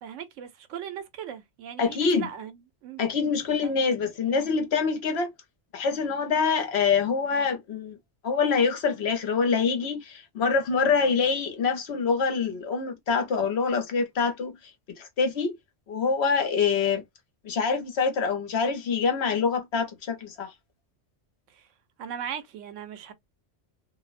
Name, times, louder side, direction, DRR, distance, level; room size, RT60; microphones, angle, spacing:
voice 1, 0.0-3.0 3.6-3.7 21.5-21.7 22.0-23.1, right 8 dB, 90° right, 1.0 m, -38 dB
voice 2, 1.8-2.3 3.0-5.3 5.7-8.0 8.2-14.6 14.9-15.5 15.9-17.0 17.4-20.5, left 5 dB, 65° left, 0.9 m, -25 dB
2.5 x 2.1 x 2.4 m
omnidirectional pair, 1.2 m